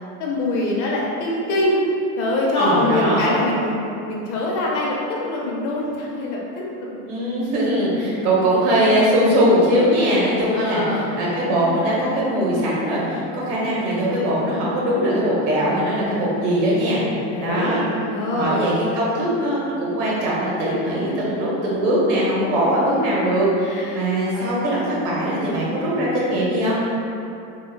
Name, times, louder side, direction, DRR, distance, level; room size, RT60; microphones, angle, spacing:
voice 1, 0.2-1.8 2.2-3.8 4.1-7.0 10.5-11.1 17.3-18.6 23.6-24.0 24.3-24.5, left 1 dB, 85° left, -3 dB, 0.7 m, -24 dB
voice 2, 2.5-3.4 7.1-17.0 17.4-17.8 18.3-26.7, equal, 80° right, -6 dB, 0.9 m, -21 dB
2.9 x 2.3 x 2.2 m, 2.7 s
cardioid pair, 180°, 35 cm